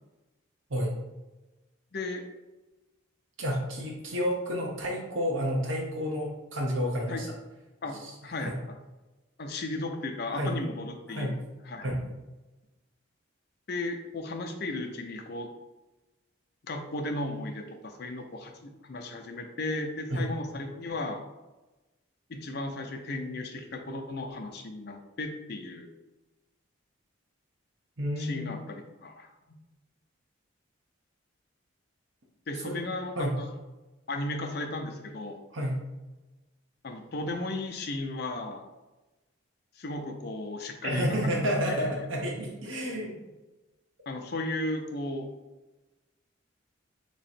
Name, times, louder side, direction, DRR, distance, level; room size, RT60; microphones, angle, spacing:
voice 1, 1.9-2.3 7.1-7.2 7.8-8.5 9.4-11.4 11.7-11.9 13.7-15.5 16.6-21.2 22.3-25.9 28.2-29.3 32.5-33.5 34.1-35.4 36.8-38.6 39.8-41.4 41.7-41.9 44.1-45.3, left 2 dB, 50° left, 4 dB, 0.5 m, -35 dB
voice 2, 3.4-7.3 8.0-8.1 8.5-8.6 10.4-10.6 11.1-11.4 11.8-12.0 20.1-20.3 28.0-28.6 32.6-32.8 33.1-33.4 35.5-35.8 40.8-43.3, equal, 70° right, -1 dB, 1.0 m, -30 dB
3.7 x 3.1 x 4.1 m, 1.1 s
head